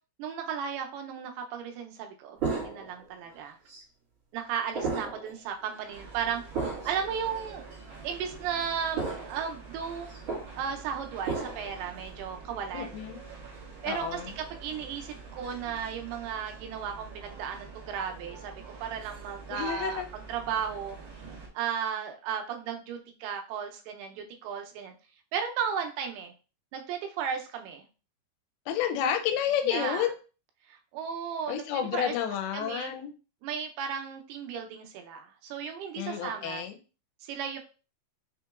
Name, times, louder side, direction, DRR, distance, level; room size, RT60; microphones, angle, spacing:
voice 1, 0.2-3.6 4.3-7.7 8.0-10.1 10.6-12.9 13.8-21.0 21.5-24.9 25.3-26.3 26.7-27.9 29.6-30.1 30.7-32.1 32.5-32.9 33.4-36.7 37.2-37.6, right 7 dB, 90° right, 4 dB, 2.7 m, -35 dB
sound 1, 2.4-3.0 3.7-3.8 4.7-5.3 5.7-5.9 6.5-7.0 7.7-7.8 9.0-9.4 9.8-10.5 11.2-11.7, right 4 dB, 40° right, 1.9 m, -33 dB
sound 2, 5.9-21.5, right 4 dB, 65° right, 1.6 m, -46 dB
voice 2, 12.7-13.2 13.8-14.3 19.5-20.1 28.7-30.2 31.5-33.1 36.0-36.8, left 9 dB, 85° left, 6 dB, 2.5 m, -30 dB
5.9 x 2.9 x 2.3 m, 0.34 s
omnidirectional pair, 4.5 m